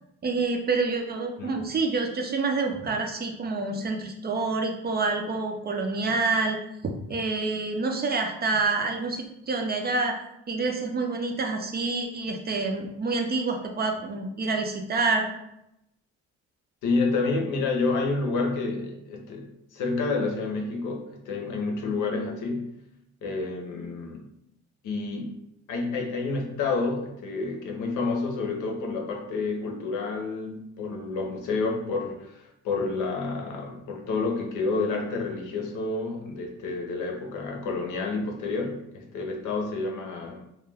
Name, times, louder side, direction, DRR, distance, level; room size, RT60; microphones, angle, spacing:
voice 1, 0.2-6.6 6.8-10.2 10.5-15.3, right 3 dB, 35° right, 3 dB, 0.4 m, -27 dB
voice 2, 16.8-22.7 23.2-24.3 24.8-40.4, left 3 dB, 85° left, 2 dB, 0.7 m, -29 dB
2.2 x 2.2 x 3.3 m, 0.82 s
cardioid pair, 90°, 30 cm